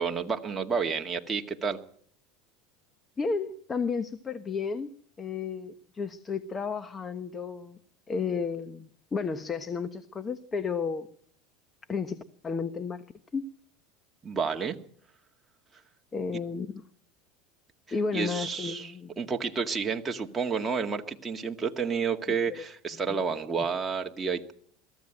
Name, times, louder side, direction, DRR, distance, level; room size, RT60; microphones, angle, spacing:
voice 1, 0.0-1.8 14.2-14.8 18.1-24.5, right 5 dB, 15° right, 3 dB, 1.9 m, -30 dB
voice 2, 3.2-4.9 5.2-7.8 8.1-11.1 11.9-13.0 13.3-13.5 16.1-16.7 17.9-19.1 22.3-22.6 23.1-23.2, left 5 dB, 20° left, 12 dB, 1.1 m, -32 dB
22.5 x 14.5 x 9.0 m, 0.63 s
supercardioid pair, 125°, 0 cm